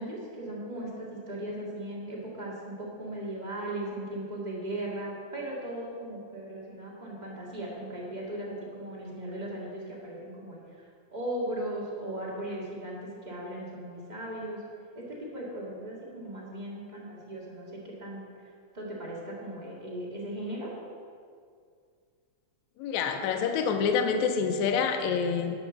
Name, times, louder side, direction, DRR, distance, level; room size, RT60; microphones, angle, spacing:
voice 1, 0.0-10.6 11.1-14.6 14.9-18.2 18.7-20.7, right 1 dB, 20° right, -5 dB, 1.5 m, -37 dB
voice 2, 22.8-25.6, left 6 dB, 75° left, 5 dB, 2.0 m, -27 dB
11.0 x 5.4 x 6.7 m, 2.2 s
omnidirectional pair, 3.5 m